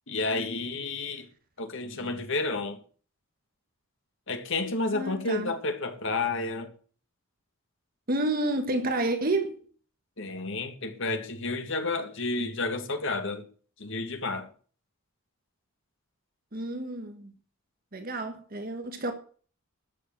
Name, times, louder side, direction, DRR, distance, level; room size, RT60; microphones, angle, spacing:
voice 1, 0.1-1.3 1.6-2.8 4.3-6.7 10.2-13.5 13.8-14.5, left 3 dB, 60° left, 1.9 m, -31 dB
voice 2, 1.8-2.2 4.9-5.5 8.1-9.6 16.5-17.3 17.9-19.1, right 2 dB, 45° right, 1.4 m, -30 dB
13.0 x 7.0 x 7.4 m
head